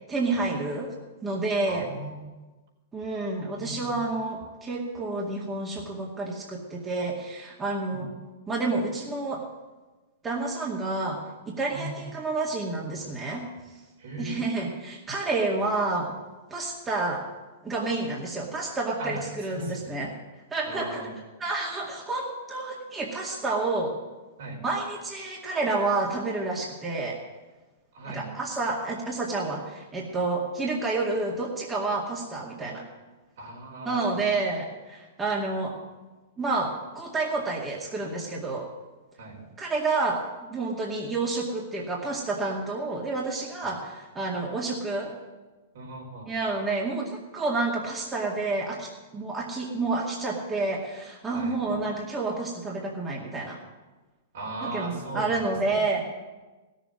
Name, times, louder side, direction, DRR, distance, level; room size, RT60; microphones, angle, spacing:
voice 1, 0.1-0.9 1.2-1.9 2.9-8.1 8.5-9.4 10.2-13.5 14.2-16.1 16.5-17.3 17.6-20.1 20.5-21.1 21.4-23.9 24.6-27.2 28.0-32.9 33.8-35.7 36.4-38.7 39.6-40.2 40.5-45.1 46.3-53.6 54.6-56.1, right 3 dB, 20° right, -3 dB, 2.1 m, -29 dB
voice 2, 1.7-2.3 3.5-4.0 7.9-8.0 11.7-12.0 14.0-14.5 19.0-19.2 19.5-19.9 20.7-21.1 24.4-24.6 27.9-28.3 33.4-34.3 39.2-39.4 43.6-43.7 45.7-46.3 51.3-51.8 54.3-55.8, right 2 dB, 70° right, -1 dB, 4.7 m, -38 dB
16.0 x 7.3 x 7.6 m, 1.2 s
hypercardioid pair, 110°, 0 cm